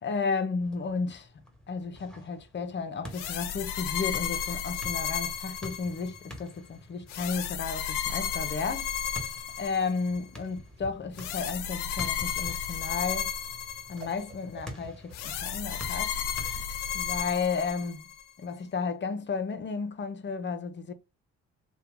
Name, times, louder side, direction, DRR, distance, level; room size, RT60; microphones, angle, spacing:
voice 1, 0.0-1.3 1.7-8.9 9.6-13.3 13.9-16.2 16.9-18.1 18.4-20.9, left 5 dB, 35° left, 0.6 m, -33 dB
sound 1, 0.6-17.3, equal, ahead, 1.2 m, -48 dB
sound 2, 3.1-6.3 7.1-10.2 11.1-14.3 15.1-18.2, left 8 dB, 85° left, 0.5 m, -33 dB
Whoosh swoosh swish, 10.2-15.7, equal, 30° right, 1.6 m, -49 dB
2.8 x 2.2 x 3.6 m
supercardioid pair, 60°, 32 cm